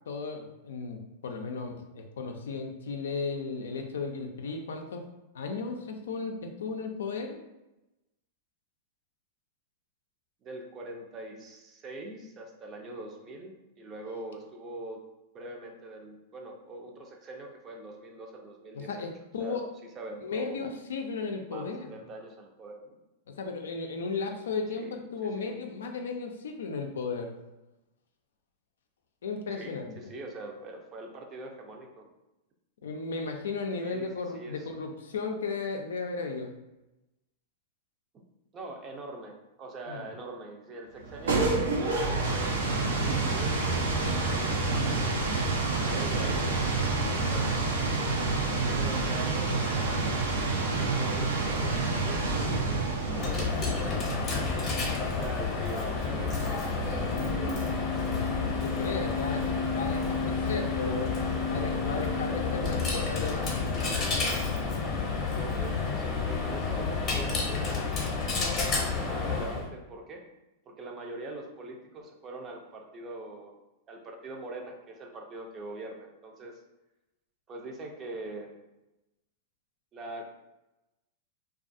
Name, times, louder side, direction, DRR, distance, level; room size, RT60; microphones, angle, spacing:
voice 1, 0.1-5.0 5.3-7.4 18.7-19.7 20.2-21.9 23.3-27.4 29.2-30.0 32.8-36.5 39.9-40.1 58.6-61.1 61.4-63.7, left 4 dB, 80° left, 4 dB, 0.4 m, -35 dB
voice 2, 10.4-15.0 15.3-19.1 19.4-19.6 19.9-20.7 21.4-23.0 24.8-24.9 25.2-25.6 29.5-32.1 33.8-34.7 38.5-42.5 43.1-47.6 48.5-54.2 55.2-57.7 65.3-67.9 68.7-70.2 70.7-73.5 73.9-76.6 77.5-78.5 79.9-80.2, right 2 dB, 30° right, 2 dB, 0.5 m, -43 dB
sound 1, 41.0-57.7, right 3 dB, 85° right, 0.5 m, -29 dB
Coin (dropping), 53.0-69.7, left 4 dB, 35° left, 0.7 m, -30 dB
2.4 x 2.3 x 2.5 m, 0.97 s
hypercardioid pair, 115°, 0 cm